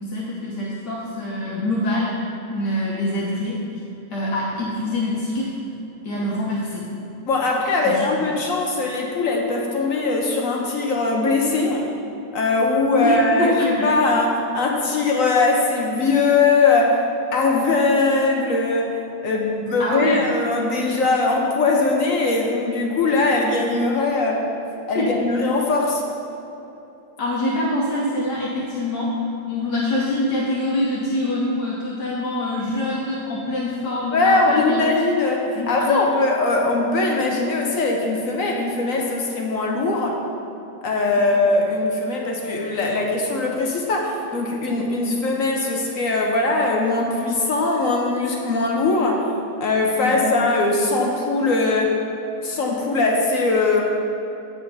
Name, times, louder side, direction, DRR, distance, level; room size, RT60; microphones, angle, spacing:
voice 1, 0.0-2.2 2.5-3.6 4.1-5.5 6.0-6.9 7.8-8.3 13.0-13.9 19.8-20.2 24.9-25.1 27.2-34.8 35.5-36.2 41.2-41.3 50.0-50.4, left 1 dB, 75° left, -6 dB, 1.7 m, -25 dB
voice 2, 7.3-11.9 12.3-17.0 17.3-19.0 19.2-24.5 24.9-26.0 34.1-40.2 40.8-49.2 49.6-51.9 52.4-53.8, left 3 dB, 55° left, 0 dB, 1.1 m, -21 dB
9.0 x 5.6 x 5.5 m, 2.9 s
omnidirectional pair, 1.8 m